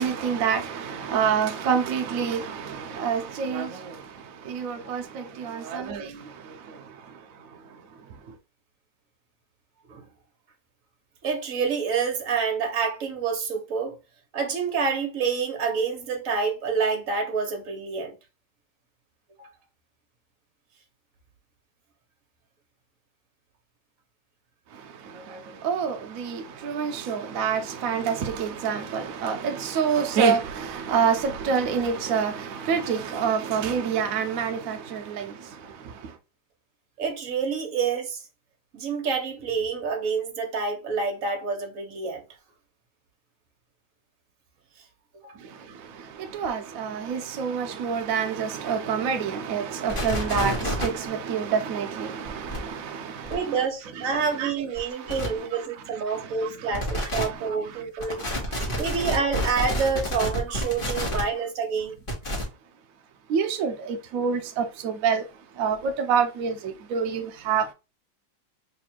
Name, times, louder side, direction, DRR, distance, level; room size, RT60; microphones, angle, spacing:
voice 1, 0.0-3.7 4.5-6.1 25.6-35.2 46.3-53.0 54.4-55.2 63.3-65.2 65.6-66.5 66.9-67.7, right 6 dB, 85° right, 0.7 m, -27 dB
voice 2, 11.2-14.0 14.3-18.1 19.4-19.5 37.0-38.2 38.7-42.2 45.2-45.4 53.3-58.3 58.8-61.9, right 5 dB, 55° right, 1.2 m, -28 dB
sound 1, 49.9-50.9 52.3-52.6 53.3-53.4 54.8-54.9 55.1-55.3 56.7-57.2 58.0-61.2 62.1-62.4, equal, 35° left, 1.1 m, -28 dB
3.4 x 2.4 x 4.3 m
omnidirectional pair, 2.0 m